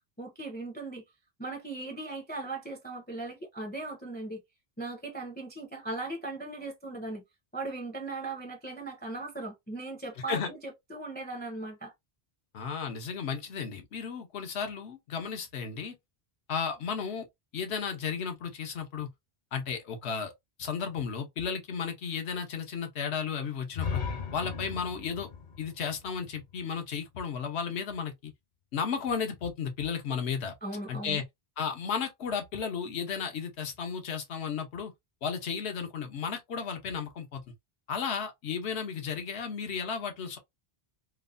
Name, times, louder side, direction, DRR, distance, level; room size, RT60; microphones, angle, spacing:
voice 1, 0.2-1.0 1.4-4.4 4.8-7.2 7.5-11.9 30.6-31.2, right 2 dB, 15° left, 0.4 m, -38 dB
voice 2, 12.5-15.9 16.5-17.3 17.5-19.1 19.5-20.3 20.6-24.0 24.3-25.3 25.6-28.3 28.7-30.5 30.9-31.2 31.6-34.9 35.2-37.4 37.9-40.4, left 6 dB, 85° left, 1.0 m, -34 dB
sound 1, 23.7-27.6, left 6 dB, 50° left, 0.7 m, -37 dB
3.0 x 2.1 x 2.4 m
omnidirectional pair, 1.1 m